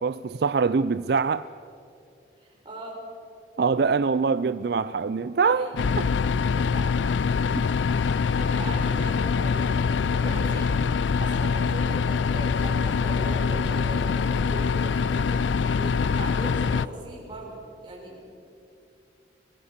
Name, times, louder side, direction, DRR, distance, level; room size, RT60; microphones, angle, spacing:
voice 1, 0.0-1.4 3.6-5.7 6.0-6.1 7.6-7.7, right 5 dB, 60° right, 14 dB, 0.4 m, -24 dB
voice 2, 2.4-3.0 5.4-5.8 6.6-6.9 7.6-9.7 10.1-10.7 11.2-15.3 15.7-18.3, right 1 dB, 25° right, -3 dB, 6.3 m, -39 dB
sound 1, 5.8-16.9, left 5 dB, 80° left, 0.5 m, -24 dB
25.5 x 18.5 x 6.7 m, 2.5 s
head